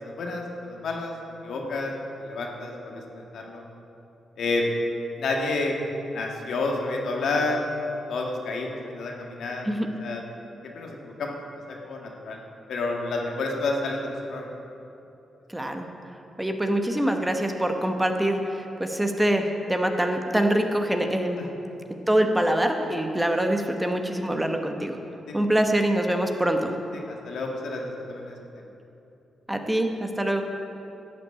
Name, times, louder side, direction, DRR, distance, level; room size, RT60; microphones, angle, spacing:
voice 1, 0.2-1.1 1.4-1.9 2.2-3.6 4.4-4.6 5.2-5.7 6.1-7.6 8.1-9.7 10.0-10.2 10.6-11.4 11.7-12.4 12.7-14.5 21.4-21.5 25.3-25.4 26.9-28.3, left 3 dB, 75° left, 0 dB, 1.6 m, -30 dB
voice 2, 15.5-15.9 16.4-21.5 22.1-25.0 25.3-26.8 29.5-30.4, right 1 dB, 10° right, 5 dB, 1.1 m, -24 dB
12.0 x 5.9 x 8.3 m, 2.9 s
cardioid pair, 65°, 0 cm